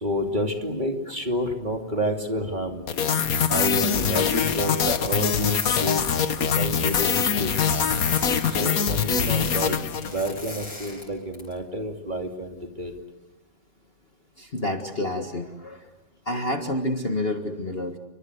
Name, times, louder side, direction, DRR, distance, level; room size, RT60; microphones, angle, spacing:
voice 1, 0.0-2.9 3.5-6.0 6.4-7.7 8.4-9.8 10.0-12.9, equal, 25° right, 4 dB, 2.9 m, -29 dB
sound 1, 2.9-10.4, left 7 dB, 50° left, 1.5 m, -23 dB
sound 2, 3.9-6.1 6.4-8.6 8.8-11.0 11.3-11.5, left 2 dB, 85° left, 7.4 m, -39 dB
voice 2, 14.4-15.9 16.3-18.0, left 1 dB, 30° left, 5 dB, 1.9 m, -29 dB
30.0 x 24.5 x 8.1 m, 1.0 s
omnidirectional pair, 2.0 m